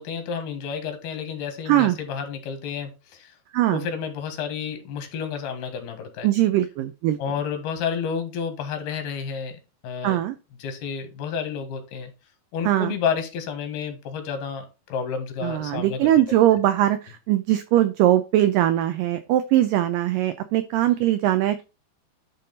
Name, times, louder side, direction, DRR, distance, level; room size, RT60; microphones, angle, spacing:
voice 1, 0.0-3.3 3.7-6.3 7.2-10.2 10.6-12.1 12.5-16.1, left 6 dB, 80° left, 7 dB, 3.4 m, -30 dB
voice 2, 1.7-2.0 3.5-3.9 6.2-7.2 10.0-10.4 12.7-12.9 15.4-21.6, right 13 dB, 90° right, 11 dB, 1.9 m, -21 dB
10.5 x 3.8 x 4.0 m, 0.29 s
omnidirectional pair, 4.5 m